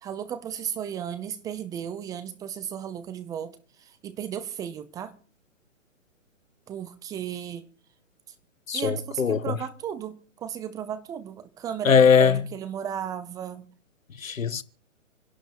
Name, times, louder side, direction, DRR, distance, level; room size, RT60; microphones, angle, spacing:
voice 1, 0.0-5.1 6.7-7.7 8.7-13.6, right 9 dB, 10° right, 0.6 m, -35 dB
voice 2, 8.7-9.6 11.8-12.4 14.2-14.6, left 6 dB, 90° left, 1.1 m, -20 dB
27.0 x 11.5 x 3.0 m
hypercardioid pair, 135°, 39 cm